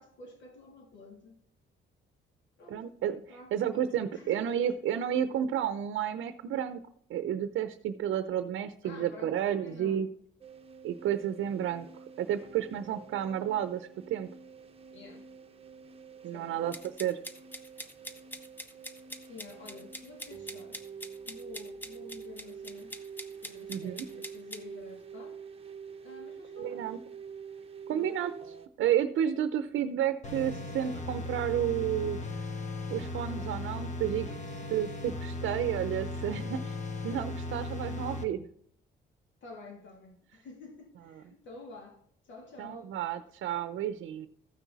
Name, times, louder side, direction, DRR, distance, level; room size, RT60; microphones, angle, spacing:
voice 1, 0.0-1.4 2.6-2.9 3.3-4.7 8.8-10.1 14.9-15.3 16.3-16.8 19.3-20.8 21.3-22.9 23.3-25.4 26.0-27.0 27.9-28.2 33.1-33.6 39.4-42.9, left 3 dB, 70° left, 2.9 m, -50 dB
voice 2, 2.7-6.8 7.1-10.1 10.8-11.9 12.2-14.3 16.2-16.7 17.0-17.2 23.7-24.1 26.6-27.0 27.9-28.3 28.8-32.2 32.9-34.3 34.7-36.8 37.0-38.5 42.6-44.3, right 10 dB, 75° right, 0.7 m, -31 dB
sound 1, 10.4-28.7, right 6 dB, 30° right, 0.9 m, -47 dB
sound 2, 16.7-24.6, equal, 10° left, 1.0 m, -44 dB
sound 3, 30.2-38.2, left 2 dB, 35° left, 1.4 m, -37 dB
14.5 x 6.1 x 4.1 m
cardioid pair, 90°, 20 cm